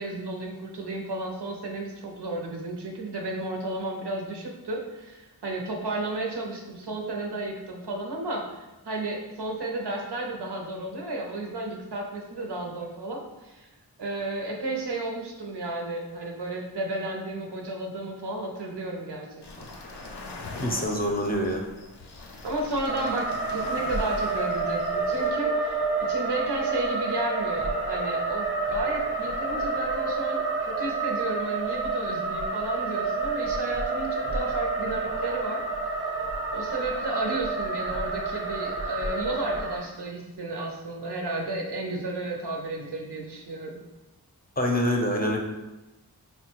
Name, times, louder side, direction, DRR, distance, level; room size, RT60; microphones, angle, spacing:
voice 1, 0.0-13.7 14.0-19.3 19.6-19.7 22.4-35.6 36.5-43.8, right 2 dB, 90° right, 1 dB, 0.6 m, -33 dB
sound 1, 19.4-25.3, left 2 dB, 90° left, 0.5 m, -42 dB
voice 2, 20.6-21.6 44.6-45.4, equal, 25° left, 0 dB, 0.5 m, -25 dB
sound 2, 22.9-39.8, right 3 dB, 35° right, 0.4 m, -29 dB
3.7 x 2.2 x 2.9 m, 1.0 s
wide cardioid pair, 55°, 39 cm